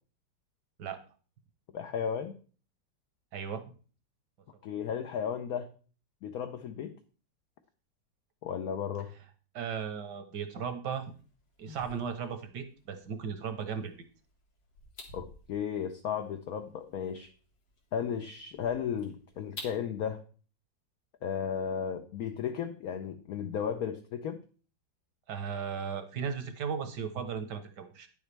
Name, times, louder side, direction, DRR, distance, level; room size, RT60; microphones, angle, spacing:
voice 1, 1.7-2.4 4.6-5.7 6.2-6.9 8.4-9.1 15.1-17.3 17.9-20.2 21.2-24.4, left 7 dB, 65° left, 6 dB, 1.1 m, -34 dB
voice 2, 3.3-3.7 9.5-11.1 11.6-13.9 25.3-28.1, right 7 dB, 75° right, 7 dB, 1.7 m, -36 dB
sound 1, 11.0-19.8, left 2 dB, 85° left, 2.5 m, -52 dB
10.0 x 7.2 x 3.4 m, 0.40 s
omnidirectional pair, 1.9 m